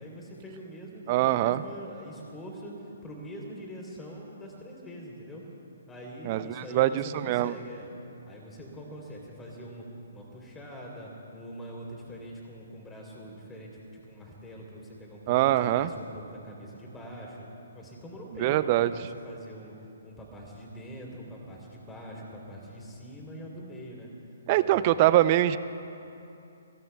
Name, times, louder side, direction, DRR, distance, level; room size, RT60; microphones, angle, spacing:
voice 1, 0.0-5.4 5.9-7.9 8.3-9.8 10.1-17.5 17.7-19.7 20.0-24.1 24.5-25.0, equal, 10° left, -1 dB, 3.4 m, -43 dB
voice 2, 1.1-1.6 6.3-7.5 15.3-15.9 18.4-18.9 24.5-25.6, right 14 dB, 35° right, 15 dB, 0.5 m, -23 dB
28.0 x 17.5 x 2.3 m, 2.8 s
figure-of-eight pair, 135°, 0 cm